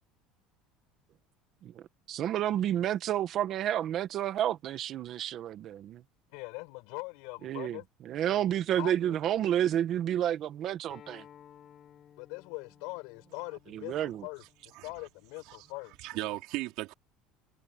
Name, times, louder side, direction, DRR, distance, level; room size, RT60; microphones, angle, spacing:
voice 1, 1.6-6.0 7.4-7.8 8.1-11.2 13.7-14.2, right 11 dB, 40° right, 1.4 m, -30 dB
voice 2, 6.3-7.9 8.3-9.2 12.2-16.4, left 29 dB, 70° left, 5.5 m, -42 dB
Acoustic guitar, 10.9-16.1, left 9 dB, 35° left, 5.8 m, -58 dB
voice 3, 16.0-16.9, right 20 dB, 60° right, 4.4 m, -36 dB
cardioid pair, 150°, 0 cm